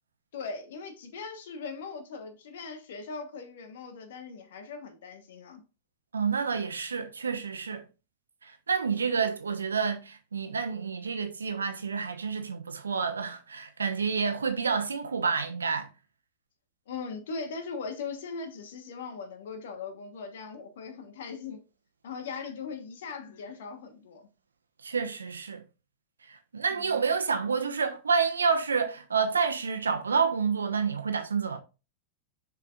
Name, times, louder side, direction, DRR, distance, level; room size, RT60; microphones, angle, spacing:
voice 1, 0.3-5.6 16.9-21.6 22.0-24.3 26.7-27.0, left 5 dB, 60° left, 1.3 m, -39 dB
voice 2, 6.1-7.8 8.4-15.9 24.8-25.6 26.3-31.6, right 5 dB, 75° right, 1.0 m, -29 dB
7.1 x 5.8 x 2.5 m
figure-of-eight pair, 90°, 0 cm